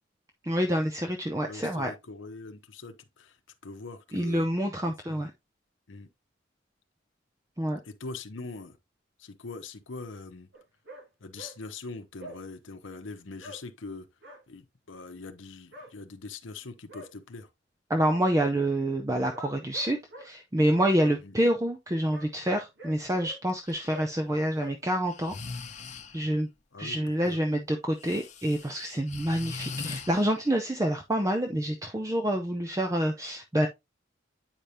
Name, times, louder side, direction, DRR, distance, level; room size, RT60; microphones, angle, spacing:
voice 1, 0.4-1.9 4.1-5.3 7.6-7.8 17.9-25.3 26.1-26.5 26.8-33.7, right 1 dB, 15° right, 0.6 m, -27 dB
voice 2, 1.5-3.4 3.6-4.5 4.8-5.3 5.9-6.1 7.8-8.8 9.2-10.5 11.2-14.1 14.5-17.5 21.2-21.4 26.7-27.0 27.2-27.4, left 3 dB, 75° left, 0.8 m, -42 dB
sound 1, 10.5-11.0 11.3-11.6 12.2-12.4 13.4-13.6 14.2-14.4 15.7-15.9 16.6-17.1 19.3-20.3 21.0-21.2 22.1-23.4 23.9-24.1 24.5-24.7, equal, 65° right, 2.4 m, -45 dB
Breathing, 23.7-23.9 25.1-26.3 28.0-30.7, left 4 dB, 35° left, 0.9 m, -41 dB
8.9 x 5.1 x 2.7 m
head